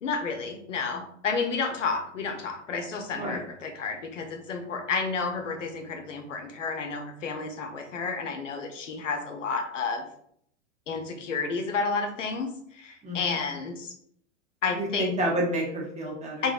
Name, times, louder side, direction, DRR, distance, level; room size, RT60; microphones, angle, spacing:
voice 1, 0.0-10.0 10.9-13.9 14.6-15.1 16.4-16.5, left 4 dB, 85° left, 5 dB, 0.6 m, -31 dB
voice 2, 13.0-13.5 14.7-16.5, right 1 dB, 20° right, -2 dB, 0.8 m, -30 dB
2.8 x 2.6 x 2.3 m, 0.67 s
hypercardioid pair, 95°, 37 cm